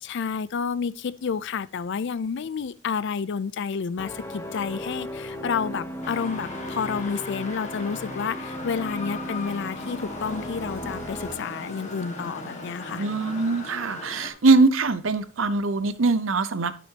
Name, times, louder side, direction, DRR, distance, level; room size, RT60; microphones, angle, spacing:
voice 1, 0.0-13.0, left 6 dB, 60° left, 0.4 m, -30 dB
sound 1, 4.0-11.3, equal, 15° left, 1.1 m, -36 dB
sound 2, 6.0-14.3, left 2 dB, 35° left, 1.6 m, -38 dB
voice 2, 13.0-16.8, right 3 dB, 70° right, 0.7 m, -22 dB
12.0 x 6.2 x 2.8 m
head